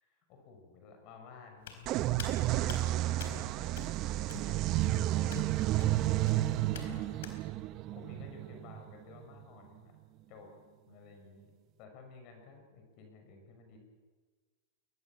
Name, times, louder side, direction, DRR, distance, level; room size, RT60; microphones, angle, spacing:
voice 1, 0.3-1.8 2.4-3.4 4.4-5.5 6.0-7.1 7.9-9.9 10.3-10.5 10.9-11.5 11.8-13.8, left 4 dB, 45° left, 4 dB, 5.9 m, -53 dB
Hands, 1.6-7.4, left 7 dB, 75° left, 4.2 m, -48 dB
sound 1, 1.9-9.4, right 15 dB, 40° right, 0.8 m, -31 dB
21.5 x 20.0 x 7.4 m, 1.4 s
hypercardioid pair, 130°, 0 cm